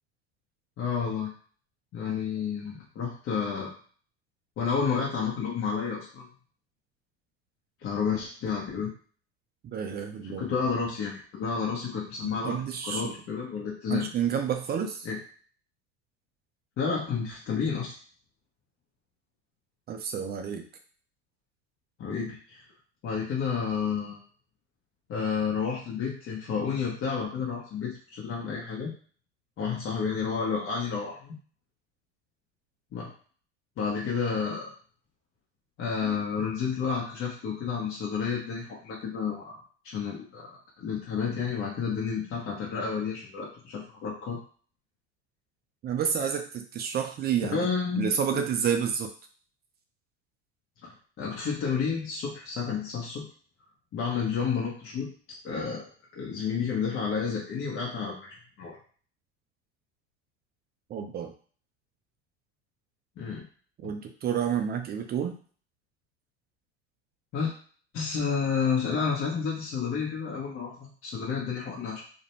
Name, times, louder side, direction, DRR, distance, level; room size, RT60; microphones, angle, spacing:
voice 1, 0.8-1.3 1.9-3.7 4.6-6.3 7.8-8.9 10.2-14.1 15.0-15.2 16.8-18.0 22.0-22.6 23.0-24.2 25.1-28.9 29.6-31.4 32.9-33.1 33.8-34.7 35.8-39.5 39.8-40.5 40.8-44.4 47.5-48.4 50.8-53.3 53.9-55.1 55.4-58.8 63.2-63.4 67.3-67.5 67.9-72.0, left 6 dB, 40° left, -4 dB, 0.9 m, -30 dB
voice 2, 9.7-10.4 12.4-13.1 13.9-15.1 19.9-20.6 45.8-47.6 48.0-49.1 60.9-61.3 63.8-65.4, right 8 dB, 30° right, 5 dB, 0.4 m, -29 dB
2.5 x 2.1 x 3.0 m, 0.43 s
hypercardioid pair, 85°, 33 cm